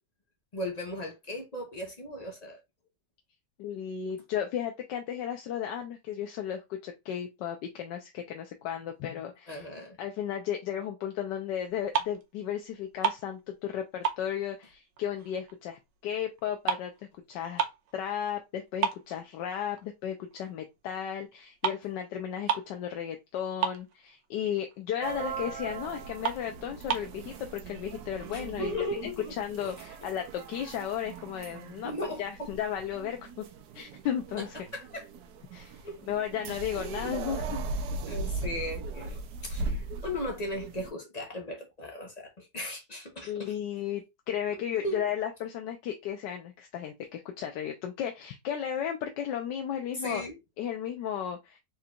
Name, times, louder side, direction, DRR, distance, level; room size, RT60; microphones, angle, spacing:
voice 1, 0.5-2.6 9.5-10.0 28.3-29.4 30.0-30.1 31.8-32.5 34.4-34.5 34.7-35.1 35.8-36.0 36.8-36.9 38.1-43.5 44.8-45.1 49.9-50.4, left 1 dB, 35° left, 0.6 m, -37 dB
voice 2, 3.6-9.7 10.0-16.9 17.3-17.6 17.9-28.7 29.4-31.9 32.2-33.4 33.7-34.5 35.5-35.8 36.1-37.6 43.2-50.2 50.6-51.6, left 9 dB, 80° left, 1.3 m, -34 dB
sound 1, 11.7-12.4 12.7-13.8 14.0-15.6 15.9-17.9 18.3-18.4 18.8-19.9 20.3-20.5 21.3-21.4 21.6-21.9 22.1-22.2 22.4-22.8 23.1-23.2 23.4-24.3 24.7-24.8 25.2-25.3 25.7-25.8 26.2-27.2, right 8 dB, 85° right, 1.4 m, -32 dB
sound 2, 25.0-40.9, right 3 dB, 70° right, 1.2 m, -39 dB
4.4 x 3.8 x 2.3 m
omnidirectional pair, 1.9 m